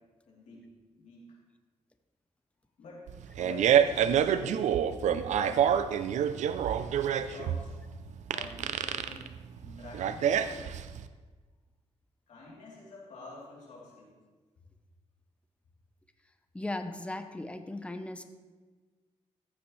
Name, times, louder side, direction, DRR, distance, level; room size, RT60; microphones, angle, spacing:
voice 1, 0.3-0.7 1.0-1.4 2.8-3.1 3.4-4.7 5.0-5.8 7.0-7.7 8.3-10.7 12.3-14.1, left 2 dB, 85° left, -5 dB, 3.4 m, -48 dB
Fart, 3.1-11.0, right 9 dB, 90° right, 0.5 m, -27 dB
voice 2, 16.5-18.2, left 2 dB, 10° left, 8 dB, 0.8 m, -37 dB
14.5 x 8.6 x 3.3 m, 1.4 s
cardioid pair, 80°, 12 cm